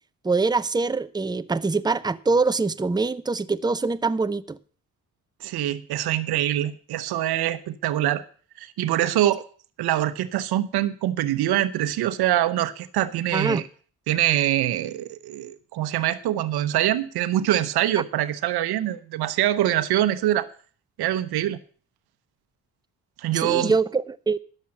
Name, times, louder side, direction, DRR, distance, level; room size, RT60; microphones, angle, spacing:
voice 1, 0.2-4.6 13.3-13.6 23.3-24.4, right 4 dB, 10° right, 0.6 m, -24 dB
voice 2, 5.4-8.2 8.6-9.4 9.8-13.6 14.1-20.5 21.0-21.6 23.2-23.7, right 13 dB, 90° right, 0.9 m, -24 dB
11.0 x 7.1 x 7.6 m
cardioid pair, 65°, 37 cm